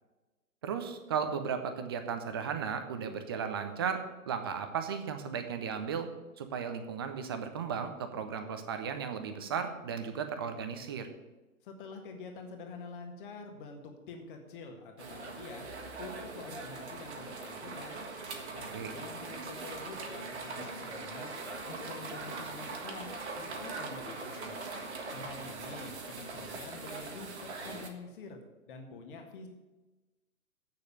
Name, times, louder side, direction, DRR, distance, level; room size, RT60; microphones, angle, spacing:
voice 1, 0.6-4.0 4.3-6.1 6.4-11.1 18.7-18.9, right 7 dB, 20° right, 7 dB, 0.5 m, -35 dB
voice 2, 11.6-15.7 16.0-18.0 18.5-21.3 21.6-24.6 25.1-28.4 28.7-29.5, left 4 dB, 35° left, 4 dB, 1.7 m, -47 dB
sound 1, 15.0-27.9, right 3 dB, 50° right, 1.5 m, -41 dB
8.3 x 6.7 x 8.1 m, 1.2 s
figure-of-eight pair, 120°, 44 cm